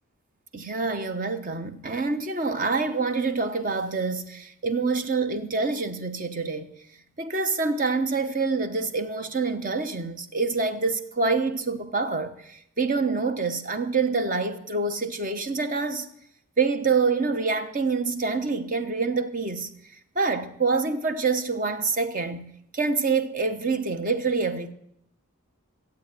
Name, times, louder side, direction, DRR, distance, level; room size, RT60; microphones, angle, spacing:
voice 1, 0.5-6.7 7.2-16.1 16.6-19.7 20.2-24.7, right 4 dB, 35° right, 1.1 m, -26 dB
16.0 x 8.5 x 9.4 m
head